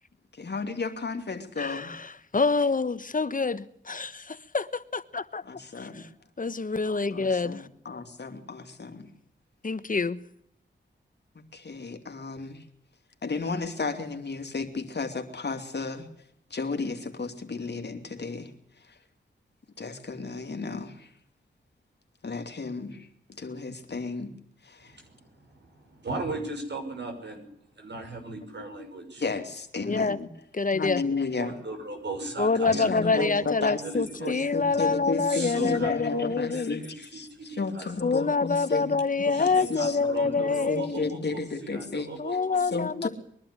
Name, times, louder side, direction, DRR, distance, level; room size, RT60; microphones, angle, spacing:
voice 1, 0.3-1.9 5.4-6.1 7.1-9.1 11.3-12.6 13.2-16.1 16.5-19.0 19.8-21.1 22.2-24.3 24.6-25.0 29.2-30.3 30.7-31.6 32.7-39.0 39.3-42.1 42.6-43.1, left 4 dB, 60° left, 2.8 m, -33 dB
voice 2, 1.6-5.4 5.8-6.1 6.4-7.7 9.6-10.2 29.8-30.2 30.5-31.0 32.4-36.8 38.0-41.2 42.2-43.1, left 4 dB, 45° left, 1.3 m, -27 dB
voice 3, 24.8-27.5 27.8-29.2 31.4-33.3 33.8-34.4 35.3-38.3 39.3-42.6, right 2 dB, 65° right, 6.0 m, -37 dB
22.5 x 11.5 x 9.9 m
cardioid pair, 55°, 20 cm